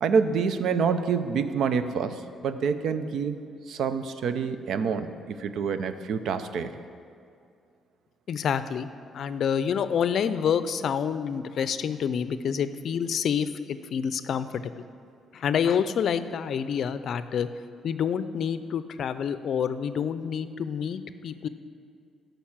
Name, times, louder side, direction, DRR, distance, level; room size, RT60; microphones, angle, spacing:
voice 1, 0.0-3.4 3.7-6.8, right 6 dB, 75° right, 11 dB, 0.6 m, -27 dB
voice 2, 8.3-8.9 9.1-14.7 15.3-17.5 17.8-21.5, left 7 dB, 65° left, 13 dB, 0.4 m, -28 dB
12.0 x 5.3 x 7.3 m, 2.4 s
cardioid pair, 90°, 0 cm